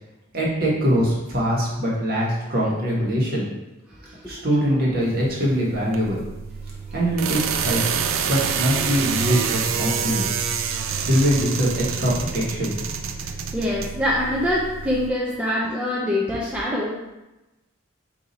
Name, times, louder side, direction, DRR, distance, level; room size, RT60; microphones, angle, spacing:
voice 1, 0.3-3.5 4.2-6.2 6.9-7.8 8.3-10.3 11.0-12.7, equal, 50° right, -5 dB, 1.2 m, -22 dB
voice 2, 4.0-4.4 10.8-11.1 13.5-16.9, left 1 dB, 5° right, -5 dB, 0.4 m, -25 dB
sound 1, 5.0-15.1, right 6 dB, 75° right, 0.4 m, -27 dB
4.1 x 2.7 x 4.0 m, 1.0 s
head